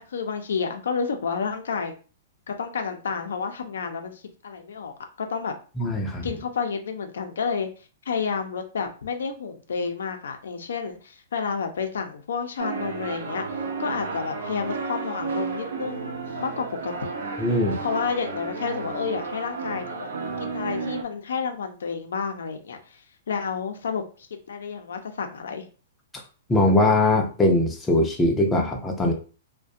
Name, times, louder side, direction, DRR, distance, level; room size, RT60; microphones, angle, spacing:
voice 1, 0.1-1.9 2.5-5.5 6.2-7.7 8.1-17.1 17.8-20.1 20.4-24.0 24.5-25.6, left 5 dB, 85° left, 5 dB, 0.5 m, -30 dB
voice 2, 5.8-6.3 17.4-17.8 26.5-29.1, left 1 dB, 10° left, 1 dB, 0.4 m, -21 dB
sound 1, 12.6-21.0, right 4 dB, 85° right, 0.5 m, -32 dB
2.4 x 2.1 x 2.5 m, 0.37 s
hypercardioid pair, 155°, 0 cm